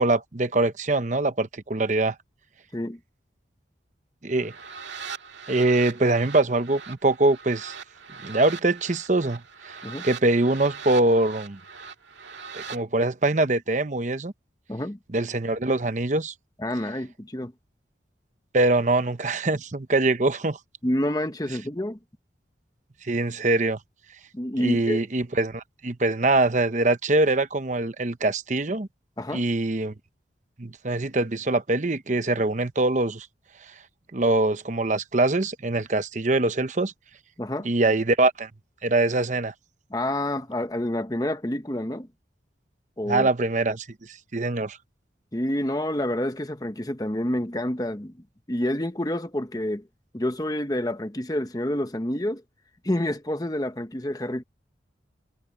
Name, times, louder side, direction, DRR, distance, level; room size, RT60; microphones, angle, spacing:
voice 1, 0.0-2.1 4.2-4.5 5.5-7.7 8.2-9.8 10.0-11.6 12.5-14.3 15.1-16.3 18.5-20.6 23.0-23.8 24.6-28.9 29.3-29.9 30.6-33.3 34.1-36.9 37.6-38.5 38.8-39.5 43.1-44.8, right 2 dB, 40° right, 0.9 m, -23 dB
sound 1, 4.3-12.8, right 6 dB, 85° right, 2.1 m, -41 dB
voice 2, 16.6-17.5 20.8-22.0 24.3-25.0 29.2-29.4 37.4-37.7 39.9-42.1 43.0-43.3 45.3-48.1 48.5-49.8 50.1-52.4 52.8-54.4, left 1 dB, 20° left, 1.0 m, -28 dB
head